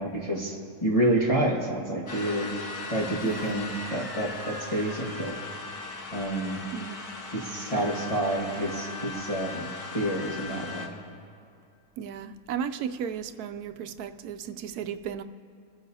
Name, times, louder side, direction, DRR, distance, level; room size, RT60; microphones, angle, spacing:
voice 1, 0.0-2.5 2.9-5.4 6.1-6.6 7.3-11.0, right 1 dB, 25° left, 1.7 m, -28 dB
sound 1, 2.1-10.9, left 3 dB, 80° left, 1.8 m, -38 dB
voice 2, 3.2-3.6 6.7-7.0 12.0-15.2, right 8 dB, 85° right, 1.1 m, -35 dB
27.5 x 9.9 x 2.8 m
omnidirectional pair, 1.6 m